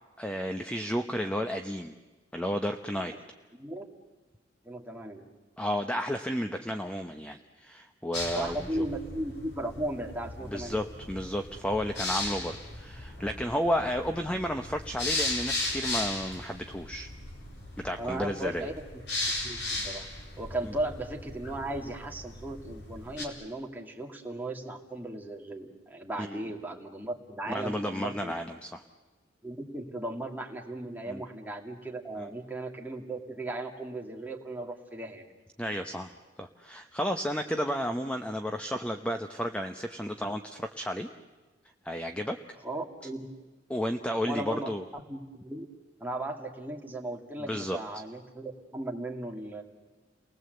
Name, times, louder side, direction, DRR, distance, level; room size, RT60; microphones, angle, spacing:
voice 1, 0.2-1.9 2.3-3.1 5.6-8.8 10.5-17.1 17.8-18.7 26.2-26.4 27.5-28.8 31.1-31.2 32.2-32.3 35.6-36.1 36.4-41.1 41.8-42.4 43.7-44.8 47.5-47.8, equal, 5° left, 6 dB, 0.8 m, -32 dB
voice 2, 4.6-5.3 8.3-10.9 18.0-18.7 19.4-20.1 20.4-28.4 29.4-35.2 42.6-43.3 44.2-45.7 46.0-49.6, right 1 dB, 10° right, 0 dB, 2.3 m, -36 dB
sound 1, 8.1-23.3, left 2 dB, 65° left, 4.4 m, -37 dB
30.0 x 20.0 x 7.9 m, 1.2 s
head